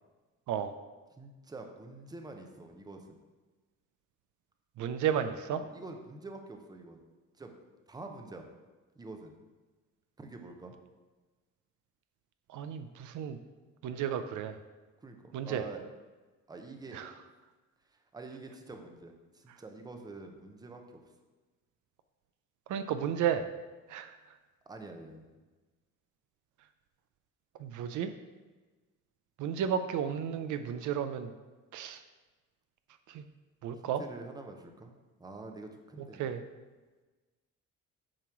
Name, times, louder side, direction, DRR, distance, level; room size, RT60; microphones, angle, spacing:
voice 1, 1.2-3.2 5.6-7.0 7.4-7.5 7.9-8.5 9.0-9.3 10.2-10.7 15.0-15.8 16.5-17.0 17.9-21.0 24.7-25.4 33.9-34.9 35.2-36.3, right 3 dB, 10° right, 4 dB, 0.7 m, -46 dB
voice 2, 4.8-5.6 12.5-13.4 13.8-14.6 15.3-15.6 16.9-17.1 22.7-23.5 23.9-24.1 27.6-28.1 29.4-31.3 31.7-32.0 33.1-33.2 33.6-34.0 36.2-36.4, right 8 dB, 70° right, 9 dB, 0.5 m, -33 dB
8.7 x 3.0 x 6.0 m, 1.3 s
cardioid pair, 135°, 32 cm